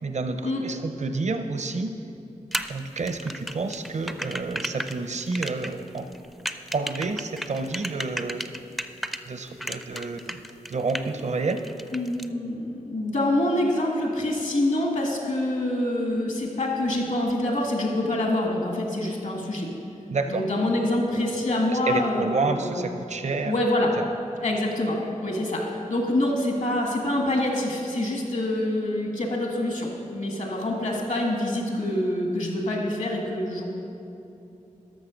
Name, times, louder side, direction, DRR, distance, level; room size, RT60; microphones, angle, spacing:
voice 1, 0.0-2.0 2.7-6.1 6.7-8.4 9.3-10.4 10.7-11.7 20.1-20.4 21.7-23.6 24.0-24.1, right 3 dB, 55° right, 8 dB, 0.6 m, -29 dB
sound 1, 2.5-9.2 9.6-11.2 11.5-12.3, equal, ahead, 0.4 m, -33 dB
voice 2, 11.9-19.7 20.2-22.8 23.4-23.9 24.4-33.7, left 1 dB, 65° left, 0 dB, 1.9 m, -26 dB
13.0 x 6.2 x 5.1 m, 2.8 s
cardioid pair, 55°, 14 cm